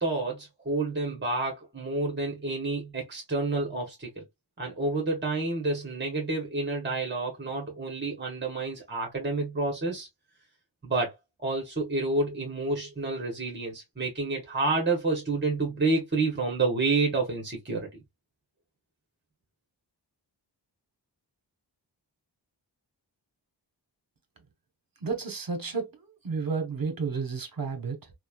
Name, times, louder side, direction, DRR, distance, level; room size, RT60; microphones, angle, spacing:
voice 1, 0.0-4.2 4.6-10.1 10.8-18.0, right 3 dB, 25° right, 1.0 m, -29 dB
voice 2, 25.0-28.1, right 4 dB, 50° right, 0.9 m, -32 dB
3.0 x 2.1 x 2.3 m
wide cardioid pair, 55°, 45 cm